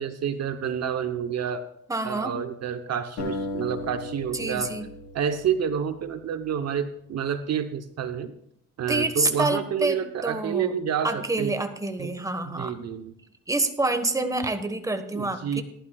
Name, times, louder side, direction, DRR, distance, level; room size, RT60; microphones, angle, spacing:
voice 1, 0.0-1.6 2.0-4.7 5.1-8.3 8.8-11.5 12.0-12.1 12.5-13.1 15.1-15.6, right 8 dB, 60° right, 9 dB, 0.9 m, -29 dB
voice 2, 1.9-2.3 4.3-4.9 8.9-10.7 11.0-12.7 13.5-15.6, right 2 dB, 10° right, 7 dB, 1.4 m, -27 dB
sound 1, 3.2-6.4, left 2 dB, 75° left, 4.9 m, -36 dB
19.5 x 11.5 x 2.4 m, 0.76 s
cardioid pair, 90°, 30 cm